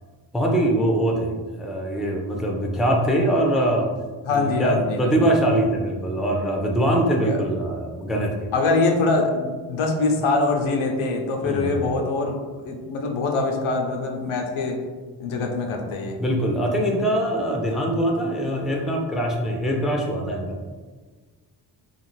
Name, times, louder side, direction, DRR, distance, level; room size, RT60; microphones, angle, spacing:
voice 1, 0.3-3.9 4.3-8.5 11.4-11.9 16.2-20.6, right 1 dB, ahead, 0 dB, 0.3 m, -23 dB
voice 2, 4.3-5.3 7.2-7.4 8.5-14.8 15.2-16.2, left 3 dB, 85° left, 2 dB, 0.6 m, -24 dB
2.5 x 2.4 x 3.0 m, 1.4 s
cardioid pair, 75°, 47 cm